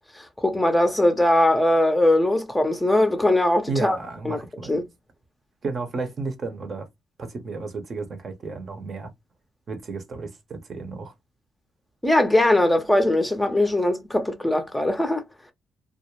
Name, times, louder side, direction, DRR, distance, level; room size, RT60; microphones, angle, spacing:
voice 1, 0.4-4.0 4.2-4.4 4.7-4.8 12.0-15.2, left 1 dB, 10° left, 0.6 m, -20 dB
voice 2, 3.7-4.8 5.6-6.9 7.2-9.1 9.7-11.1, right 3 dB, 45° right, 0.7 m, -32 dB
2.3 x 2.0 x 2.9 m
cardioid pair, 90°, 0 cm